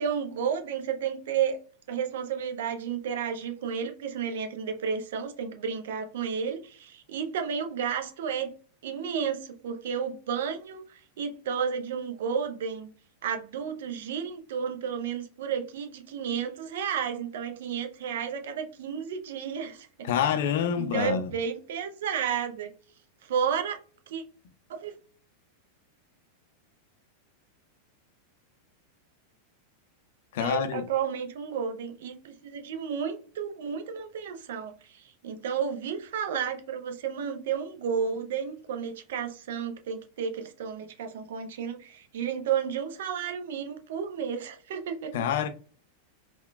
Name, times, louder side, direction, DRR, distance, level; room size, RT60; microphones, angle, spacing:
voice 1, 0.0-1.6 1.9-8.5 8.8-12.9 13.2-19.9 20.2-20.3 20.8-22.7 23.2-23.8 24.1-24.2 24.7-24.9 30.4-45.3, right 7 dB, 55° right, 0.5 m, -32 dB
voice 2, 20.0-21.3 30.3-30.9 45.1-45.5, left 8 dB, 55° left, 0.4 m, -27 dB
3.6 x 2.2 x 2.2 m
figure-of-eight pair, 90°, 0 cm